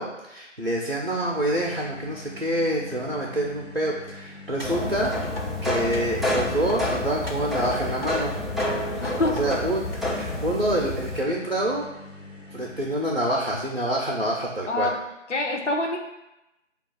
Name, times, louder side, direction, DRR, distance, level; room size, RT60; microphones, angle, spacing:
voice 1, 0.0-5.1 5.6-8.4 9.2-11.8 12.5-14.9, right 1 dB, 50° right, -2 dB, 0.5 m, -27 dB
sound 1, 0.8-13.4, left 2 dB, 85° left, 1.0 m, -44 dB
sound 2, 4.6-5.4 5.9-6.8 7.3-8.1 8.6-9.4 9.9-10.0, left 2 dB, 50° left, 1.0 m, -39 dB
sound 3, 4.6-11.2, left 1 dB, ahead, 0.4 m, -29 dB
voice 2, 9.0-9.4 14.7-15.0 15.3-16.0, left 2 dB, 65° left, 1 dB, 0.6 m, -25 dB
6.7 x 2.3 x 2.4 m, 0.94 s
figure-of-eight pair, 180°, 38 cm